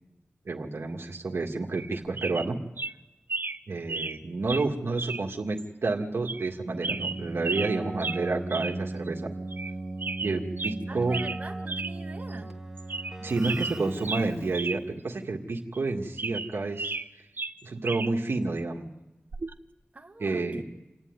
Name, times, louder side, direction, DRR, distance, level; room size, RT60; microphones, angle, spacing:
voice 1, 0.5-2.6 3.7-9.2 10.2-11.2 13.2-16.9 17.6-18.9 20.2-20.6, right 3 dB, 80° right, 0 dB, 2.1 m, -30 dB
sound 1, 1.7-1.9 2.2-2.5 2.8-2.9 3.3-3.6 3.9-4.2 4.5-4.7 5.0-5.2 5.6-5.7 6.3-6.5 6.8-7.7 8.0-8.2 8.5-8.8 9.1-9.2 9.5-9.7 10.0-10.8 11.1-11.4 11.7-11.9 12.3-12.4 12.8-13.2 13.4-14.8 15.1-15.2 15.7-17.1 17.4-18.1 19.3-19.5, right 3 dB, 55° right, 0.8 m, -33 dB
Keyboard (musical), 6.7-14.8, right 2 dB, 10° right, 2.3 m, -37 dB
voice 2, 10.9-12.5 19.9-20.6, right 2 dB, 35° right, 1 dB, 2.0 m, -44 dB
28.0 x 11.5 x 9.7 m, 1.0 s
wide cardioid pair, 80°, 4 cm